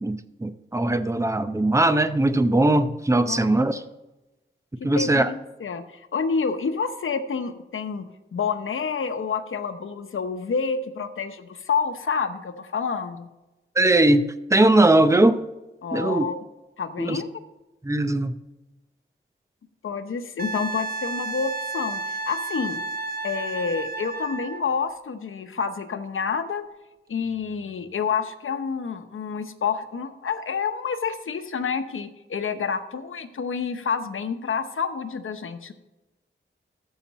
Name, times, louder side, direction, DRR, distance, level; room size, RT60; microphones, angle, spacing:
voice 1, 0.0-3.8 4.8-5.3 13.8-15.4 15.9-16.3 17.0-17.2 17.8-18.3, right 2 dB, 15° right, 10 dB, 0.6 m, -20 dB
voice 2, 4.8-8.0 8.3-13.3 15.8-16.4 16.8-17.3 19.8-22.8 23.2-26.6 27.1-35.7, left 5 dB, 85° left, 8 dB, 0.9 m, -28 dB
Wind instrument woodwind instrument, 20.4-24.6 27.3-27.4, right 3 dB, 50° right, 0.7 m, -32 dB
14.0 x 5.8 x 4.2 m, 1.0 s
wide cardioid pair, 110°, 20 cm